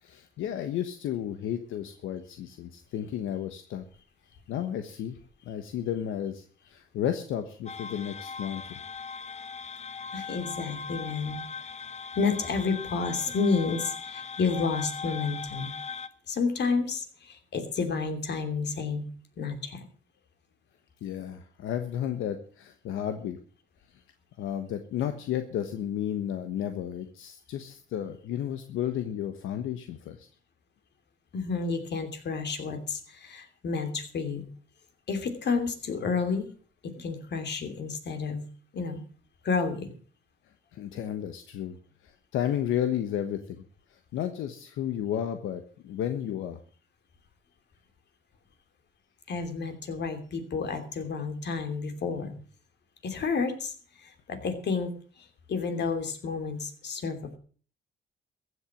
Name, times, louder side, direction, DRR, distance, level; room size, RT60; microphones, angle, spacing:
voice 1, 0.0-3.8 4.5-5.2 5.4-8.8 21.0-23.4 24.4-30.3 40.7-41.8 42.0-43.6 43.9-46.6, left 10 dB, 85° left, 8 dB, 1.2 m, -33 dB
sound 1, 7.7-16.1, left 5 dB, 35° left, 0.9 m, -39 dB
voice 2, 10.1-11.4 12.1-15.7 16.3-19.0 19.4-19.8 31.3-34.5 35.1-36.5 36.8-38.4 38.7-39.0 39.4-39.9 49.3-52.4 53.0-54.9 55.5-57.4, left 4 dB, 60° left, 7 dB, 2.9 m, -30 dB
15.0 x 8.0 x 7.4 m, 0.43 s
cardioid pair, 90°, 20 cm